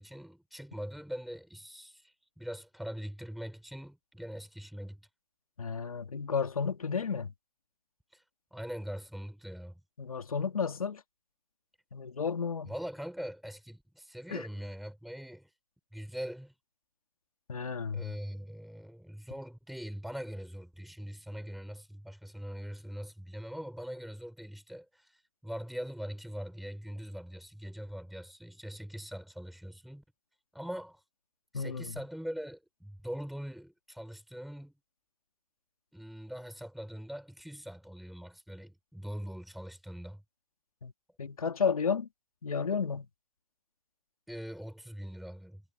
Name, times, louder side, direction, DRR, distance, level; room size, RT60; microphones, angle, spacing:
voice 1, 0.0-5.1 8.1-8.2 8.5-9.8 12.6-15.5 15.9-16.5 17.9-30.0 30.5-31.0 31.5-34.7 35.9-40.2 44.3-45.6, equal, ahead, 4.5 m, -42 dB
voice 2, 5.6-7.3 10.0-11.0 11.9-12.7 14.3-14.5 17.5-18.0 31.5-31.9 40.8-40.9 41.2-42.1 42.4-43.1, left 6 dB, 85° left, 2.0 m, -32 dB
hypercardioid pair, 165°, 18 cm